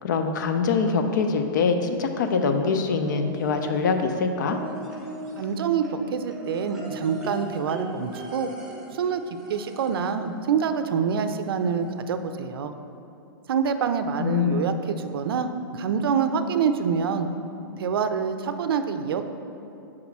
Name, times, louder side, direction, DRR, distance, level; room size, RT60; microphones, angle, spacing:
voice 1, 0.0-4.6 14.2-14.7, left 5 dB, 55° left, 6 dB, 0.5 m, -24 dB
sound 1, 3.1-4.0 4.5-10.1 11.4-11.5 11.8-11.9, right 1 dB, 5° right, 0.6 m, -38 dB
voice 2, 5.4-8.5 8.9-9.2 9.5-12.7 13.5-17.3 17.8-19.2, right 6 dB, 80° right, 9 dB, 0.4 m, -26 dB
4.9 x 4.2 x 5.9 m, 2.7 s
supercardioid pair, 175°, 12 cm